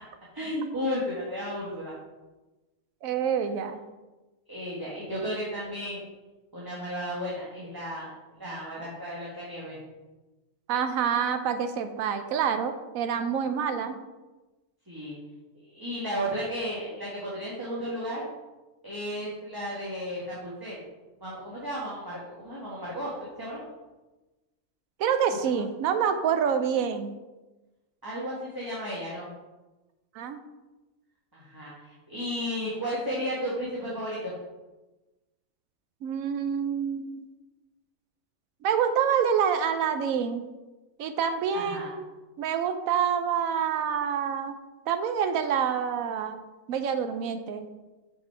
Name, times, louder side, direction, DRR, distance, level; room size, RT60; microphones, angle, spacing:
voice 1, 0.3-2.0 4.5-6.0 6.5-8.1 8.4-9.8 14.9-15.2 15.6-18.3 18.8-20.8 21.2-23.6 25.5-25.6 28.0-29.3 31.3-34.3 41.5-41.9, equal, 15° right, -6 dB, 1.3 m, -34 dB
voice 2, 3.0-3.8 10.7-14.0 25.0-27.2 30.1-30.4 36.0-37.3 38.6-40.5 41.0-42.1 42.4-44.6 44.9-46.4 46.7-47.7, right 7 dB, 85° right, 8 dB, 1.1 m, -27 dB
6.5 x 5.5 x 4.5 m, 1.1 s
omnidirectional pair, 1.4 m